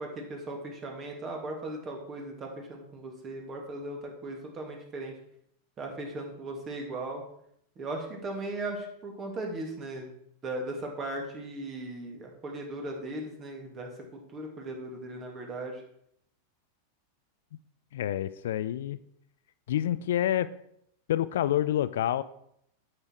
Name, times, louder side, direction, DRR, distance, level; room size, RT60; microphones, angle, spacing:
voice 1, 0.0-5.1 5.8-7.2 7.8-10.1 10.4-15.8, right 2 dB, 30° right, 1 dB, 2.5 m, -38 dB
voice 2, 17.9-19.0 19.7-20.5 21.1-22.2, left 12 dB, 70° left, 16 dB, 0.4 m, -27 dB
8.7 x 6.7 x 4.6 m, 0.72 s
hypercardioid pair, 95°, 0 cm